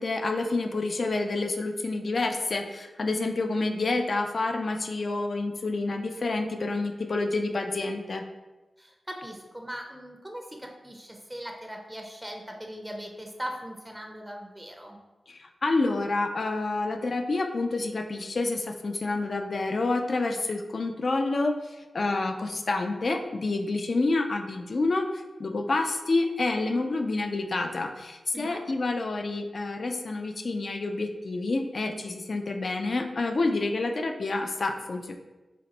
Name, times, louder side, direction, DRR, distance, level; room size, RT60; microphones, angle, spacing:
voice 1, 0.0-8.2 15.3-35.1, left 3 dB, 60° left, 5 dB, 0.3 m, -28 dB
voice 2, 8.8-15.0 28.3-28.6, equal, 10° right, 2 dB, 0.4 m, -39 dB
2.9 x 2.1 x 3.8 m, 1.1 s
cardioid pair, 55°, 0 cm